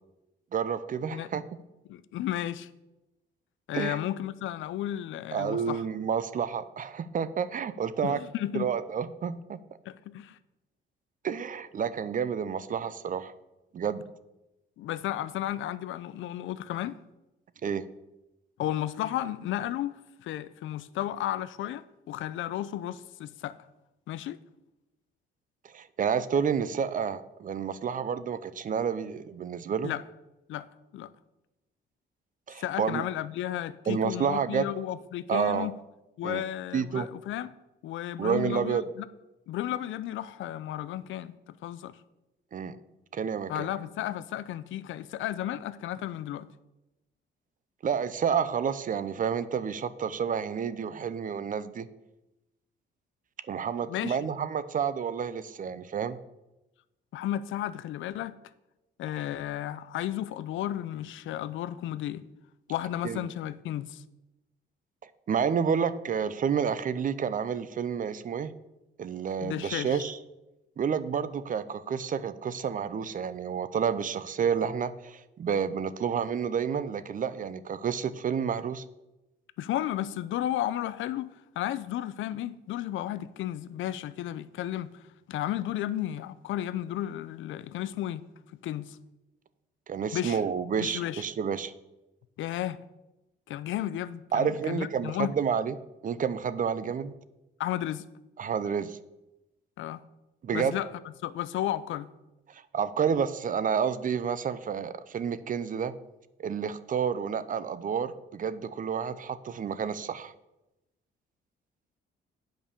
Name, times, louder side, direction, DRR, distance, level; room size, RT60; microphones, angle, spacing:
voice 1, 0.5-1.4 3.7-4.0 5.3-8.2 8.5-9.6 11.2-13.3 13.7-14.0 17.6-17.9 25.7-29.9 32.5-33.0 33.9-34.6 35.3-35.7 36.2-36.4 36.7-37.1 38.2-38.8 42.5-42.8 43.1-43.7 47.8-51.9 53.5-56.2 63.0-63.2 65.3-68.5 69.0-70.2 70.8-78.8 89.9-91.7 94.3-95.8 96.0-97.1 98.4-99.0 100.4-100.8 102.5-105.9 106.4-110.3, right 7 dB, 45° right, 0.6 m, -30 dB
voice 2, 1.9-2.7 3.7-5.8 8.0-8.7 9.9-10.4 14.8-17.0 18.6-23.6 24.1-24.4 29.8-30.0 30.5-30.7 30.9-31.1 32.6-35.7 36.2-37.5 37.8-39.0 39.5-42.0 43.5-46.5 53.8-54.2 57.1-58.4 59.0-62.2 62.7-64.0 69.4-70.1 79.6-88.3 88.6-89.0 90.1-90.4 90.8-91.2 92.4-92.8 93.5-95.4 97.6-98.1 99.8-100.0 100.5-100.9 101.2-102.1, left 12 dB, 75° left, 0.5 m, -33 dB
8.7 x 5.2 x 6.9 m
cardioid pair, 90°, 20 cm